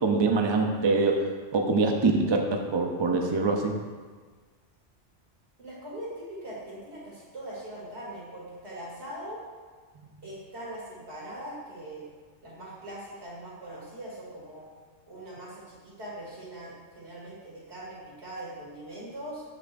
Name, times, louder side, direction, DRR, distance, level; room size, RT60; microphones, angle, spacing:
voice 1, 0.0-1.2 1.5-3.7, right 3 dB, 35° right, 2 dB, 0.5 m, -24 dB
voice 2, 5.6-9.4 10.2-12.1 12.4-14.7 15.1-19.4, right 1 dB, 60° right, -7 dB, 2.9 m, -41 dB
12.5 x 5.5 x 2.6 m, 1.5 s
omnidirectional pair, 1.2 m